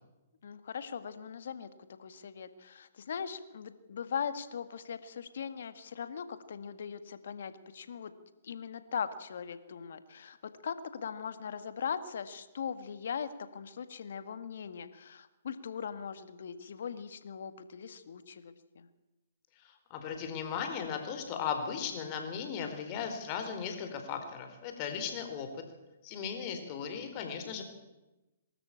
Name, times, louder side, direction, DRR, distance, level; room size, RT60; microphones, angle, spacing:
voice 1, 0.4-1.7 2.0-8.1 8.4-18.9, left 7 dB, 65° left, 12 dB, 1.8 m, -40 dB
voice 2, 19.9-25.5 26.0-27.6, left 7 dB, 35° left, 6 dB, 4.2 m, -37 dB
23.5 x 13.0 x 8.7 m, 1.1 s
hypercardioid pair, 125°, 0 cm